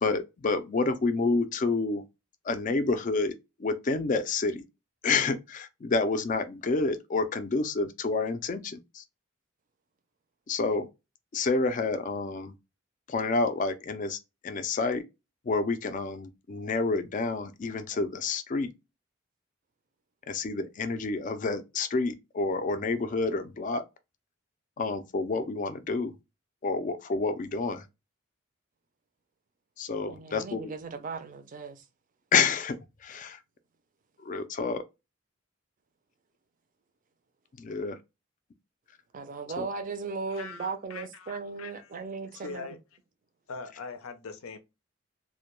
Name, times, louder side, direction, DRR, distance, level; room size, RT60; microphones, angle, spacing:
voice 1, 0.0-2.0 2.4-3.3 3.6-4.6 5.0-9.0 10.5-10.9 11.3-12.5 13.1-14.2 14.4-15.0 15.4-18.7 20.3-23.8 24.8-26.1 26.6-27.8 29.8-30.7 32.3-33.4 34.2-34.8 37.6-38.0 39.6-39.7, left 3 dB, 40° left, 0.3 m, -29 dB
voice 2, 30.1-31.8 39.1-42.7, right 4 dB, 40° right, 0.4 m, -37 dB
voice 3, 40.3-42.0 42.2-42.8 43.5-44.6, left 4 dB, 90° left, 0.5 m, -42 dB
2.1 x 2.1 x 2.9 m
head